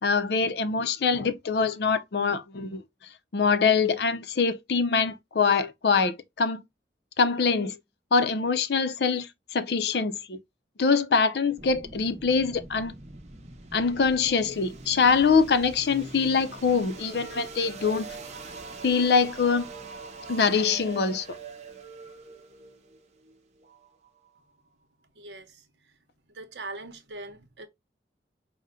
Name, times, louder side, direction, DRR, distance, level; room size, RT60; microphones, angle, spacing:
voice 1, 0.0-2.8 3.3-6.6 7.2-7.8 8.1-10.4 10.8-12.9 13.7-18.2 18.8-19.7 20.3-21.4, left 5 dB, 65° left, 0.5 m, -24 dB
sound 1, 11.6-24.4, right 3 dB, 40° right, 0.8 m, -43 dB
voice 2, 25.1-26.0 26.3-27.7, right 2 dB, 75° right, 0.8 m, -42 dB
5.5 x 2.1 x 3.6 m
head